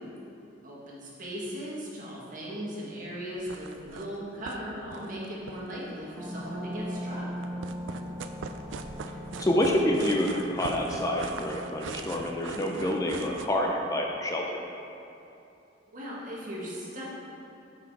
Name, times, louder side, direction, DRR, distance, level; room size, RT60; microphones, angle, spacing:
voice 1, 0.6-7.2 15.9-17.1, equal, 45° right, -5 dB, 1.5 m, -38 dB
sound 1, 3.4-4.2 4.5-4.6 4.8-6.2 7.4-13.5, right 5 dB, 80° right, 0.4 m, -41 dB
sound 2, 6.1-13.3, equal, 20° right, 0.9 m, -40 dB
voice 2, 9.4-14.6, left 1 dB, 20° left, 0 dB, 0.5 m, -27 dB
5.9 x 5.9 x 4.6 m, 2.8 s
head